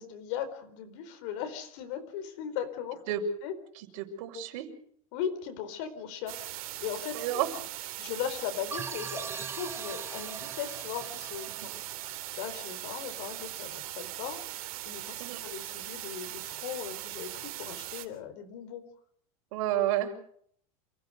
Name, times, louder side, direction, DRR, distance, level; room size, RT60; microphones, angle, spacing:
voice 1, 0.0-3.0 3.4-3.5 5.1-7.5 8.0-18.8, left 9 dB, 55° left, 9 dB, 4.5 m, -38 dB
voice 2, 3.8-4.7 7.1-7.5 11.6-11.7 15.2-15.4 19.5-20.1, right 12 dB, 65° right, 0 dB, 5.6 m, -31 dB
sound 1, 6.3-18.1, right 15 dB, 90° right, 3.3 m, -40 dB
sound 2, 8.7-13.2, right 5 dB, 15° right, 0.8 m, -42 dB
28.0 x 16.5 x 6.6 m, 0.63 s
supercardioid pair, 160°, 18 cm